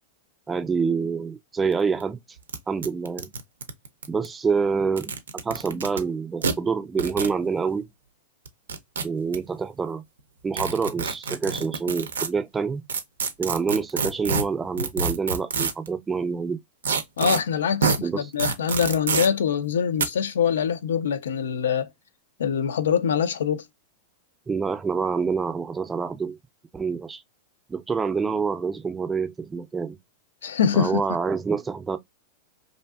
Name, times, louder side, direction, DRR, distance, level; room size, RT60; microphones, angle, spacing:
voice 1, 0.5-2.2 2.7-3.3 4.1-7.9 9.0-10.0 10.4-12.8 13.4-16.6 18.0-18.3 24.5-26.4 26.7-27.2 27.7-30.0 30.7-32.0, right 5 dB, 15° right, 0.4 m, -27 dB
sound 1, 1.7-1.8 2.0-2.1 2.5-2.6 2.8-4.3 4.9-6.0 6.4-6.5 7.0-7.3 8.5-9.4 10.5-12.3 12.9-15.9 16.8-17.4 17.8-18.0 18.4-19.3 20.0-20.1, right 5 dB, 85° right, 0.4 m, -26 dB
voice 2, 17.2-21.9 22.4-23.7 30.4-31.0, left 7 dB, 80° left, 0.4 m, -24 dB
2.5 x 2.5 x 2.2 m
hypercardioid pair, 105°, 0 cm